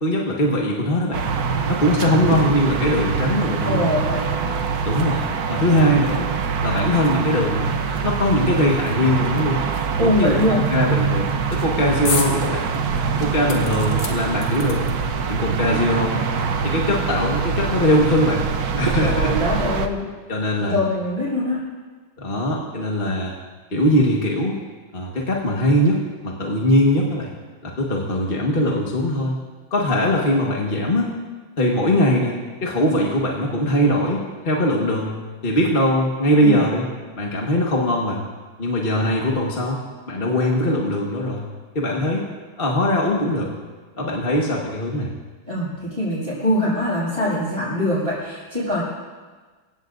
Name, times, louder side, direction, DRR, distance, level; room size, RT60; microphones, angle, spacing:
voice 1, 0.0-1.3 1.7-3.9 4.8-6.3 6.6-9.6 10.0-12.7 13.2-14.9 15.3-16.2 16.6-18.5 18.8-19.3 19.6-19.7 20.3-20.8 22.2-23.3 23.7-24.6 24.9-27.3 27.6-29.4 29.7-31.1 31.6-32.3 32.6-35.1 35.4-36.8 37.2-38.2 38.6-39.8 40.1-41.4 41.7-42.2 42.6-43.5 44.0-45.1, left 1 dB, 30° left, -2 dB, 1.6 m, -21 dB
sound 1, 1.1-19.9, right 6 dB, 55° right, 1.2 m, -24 dB
voice 2, 3.6-4.5 10.0-10.6 19.0-20.1 20.6-21.6 36.4-36.6 45.5-48.8, left 1 dB, 25° right, -11 dB, 6.8 m, -23 dB
sound 2, 12.1-12.3 12.7-12.8 13.5-15.1 16.0-16.1 16.4-16.5, left 4 dB, 90° left, 2.7 m, -29 dB
25.5 x 17.0 x 2.7 m, 1.4 s
omnidirectional pair, 2.3 m